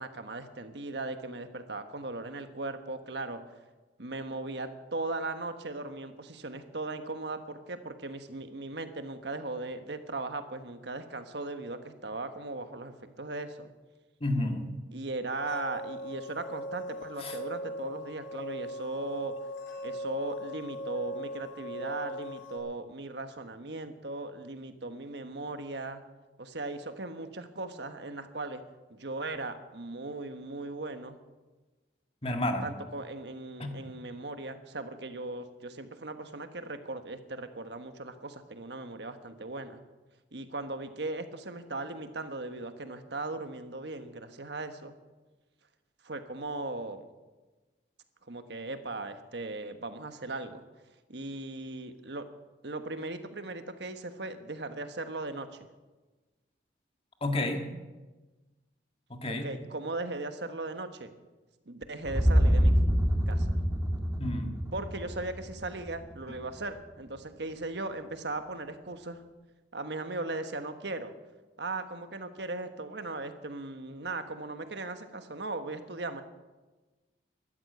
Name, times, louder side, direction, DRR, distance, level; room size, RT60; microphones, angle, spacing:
voice 1, 0.0-3.4 4.0-13.7 14.9-19.3 19.8-26.0 26.4-28.6 28.9-31.2 32.6-39.8 40.3-45.0 46.0-47.1 48.3-50.6 51.1-52.2 52.6-55.7 59.3-61.1 61.7-62.7 63.3-63.5 64.7-69.2 69.7-71.1 71.6-76.2, right 2 dB, 65° right, 8 dB, 1.3 m, -38 dB
voice 2, 14.2-14.8 17.2-17.4 32.2-32.7 33.6-33.9 57.2-57.7 59.1-59.5 64.2-64.5, left 1 dB, 30° left, 5 dB, 1.7 m, -31 dB
sound 1, 15.3-22.6, equal, 70° left, 4.2 m, -39 dB
sound 2, 62.1-66.1, equal, 15° right, 2.2 m, -26 dB
13.5 x 12.5 x 8.0 m, 1.2 s
head